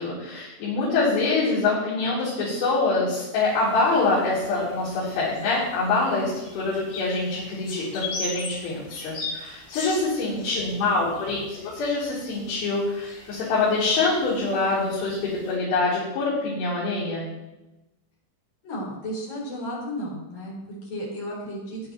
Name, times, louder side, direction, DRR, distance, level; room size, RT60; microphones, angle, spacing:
voice 1, 0.0-17.3, left 3 dB, 85° left, -12 dB, 6.5 m, -25 dB
sound 1, 3.3-15.5, left 3 dB, 65° left, 5.6 m, -41 dB
voice 2, 10.7-11.1 18.6-21.8, equal, 45° left, -4 dB, 5.4 m, -34 dB
17.5 x 10.5 x 3.1 m, 0.99 s
omnidirectional pair, 5.6 m